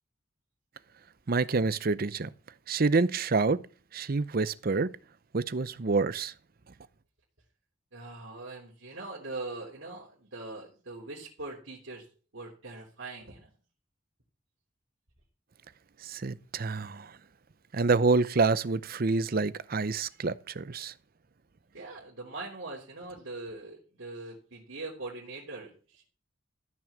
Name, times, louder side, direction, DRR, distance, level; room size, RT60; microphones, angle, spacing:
voice 1, 1.3-2.3 2.7-3.6 3.9-4.9 5.3-6.3 16.1-17.1 17.7-20.9, right 3 dB, 50° right, 0.6 m, -27 dB
voice 2, 7.9-12.1 12.3-13.5 21.7-26.1, right 2 dB, 80° right, 3.2 m, -42 dB
14.0 x 6.2 x 7.3 m
head